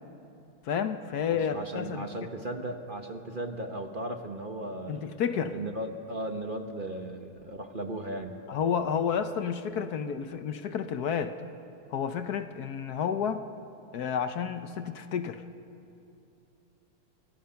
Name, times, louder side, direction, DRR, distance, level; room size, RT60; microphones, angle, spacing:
voice 1, 0.7-2.1 4.9-5.5 8.5-11.3 11.9-13.5 13.9-15.4, left 7 dB, 60° left, 9 dB, 1.1 m, -30 dB
voice 2, 1.3-5.2 5.5-8.4, right 1 dB, 30° right, 5 dB, 1.0 m, -36 dB
29.0 x 24.0 x 5.8 m, 2.7 s
omnidirectional pair, 2.4 m